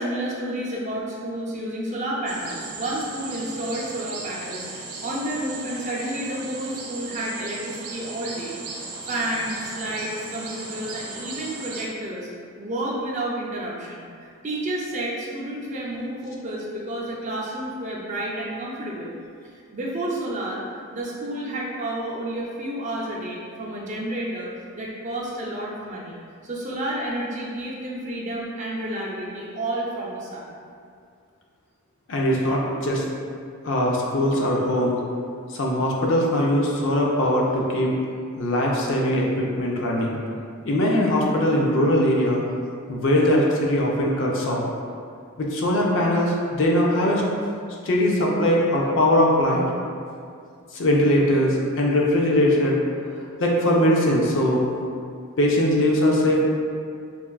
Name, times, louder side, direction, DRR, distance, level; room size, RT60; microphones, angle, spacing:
voice 1, 0.0-12.3 12.6-19.1 19.4-20.6 20.9-30.5, right 1 dB, 35° right, -5 dB, 0.4 m, -30 dB
sound 1, 2.3-11.9, right 3 dB, 85° right, 0.5 m, -36 dB
voice 2, 32.1-33.0 33.6-35.0 35.5-37.9 38.4-40.2 40.6-42.4 42.9-44.6 45.4-47.2 47.8-49.7 50.7-52.8 53.4-54.7 55.4-56.4, left 1 dB, 60° left, -2 dB, 0.5 m, -21 dB
4.2 x 2.3 x 2.3 m, 2.3 s
head